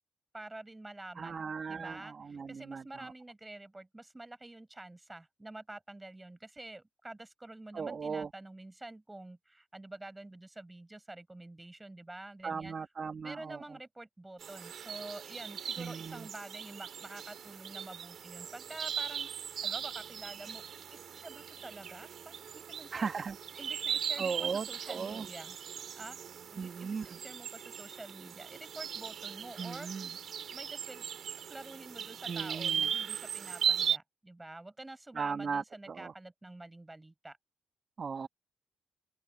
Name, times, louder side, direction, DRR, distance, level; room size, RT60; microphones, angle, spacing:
voice 1, 0.3-12.7 13.2-20.6 20.9-23.1 23.6-25.6 25.9-26.2 26.5-30.1 30.5-31.1 31.5-37.4, right 2 dB, 15° right, 6.7 m, -48 dB
voice 2, 1.1-3.1 7.7-8.3 12.4-13.6 15.8-16.3 22.9-23.4 24.2-25.3 26.6-27.2 29.6-30.1 32.2-32.9 35.1-36.1 38.0-38.3, right 5 dB, 40° right, 1.6 m, -37 dB
sound 1, 14.4-34.0, right 8 dB, 60° right, 2.7 m, -38 dB
open air
cardioid pair, 90°, 0 cm